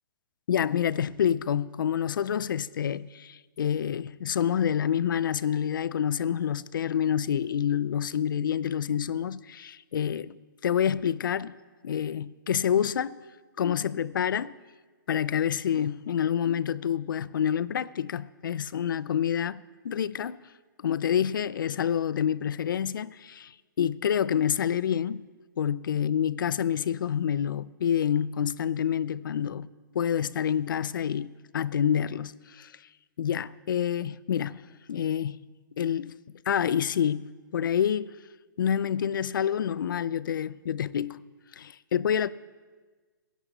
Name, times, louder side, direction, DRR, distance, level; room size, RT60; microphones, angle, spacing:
voice 1, 0.5-10.4 10.6-11.6 11.8-13.2 13.6-14.6 15.1-20.4 20.8-23.5 23.8-25.3 25.6-29.7 29.9-32.7 33.2-35.4 35.8-36.2 36.5-38.1 38.6-41.2 41.5-42.3, left 9 dB, 75° left, 0.5 m, -28 dB
20.0 x 11.0 x 4.1 m
hypercardioid pair, 150°, 11 cm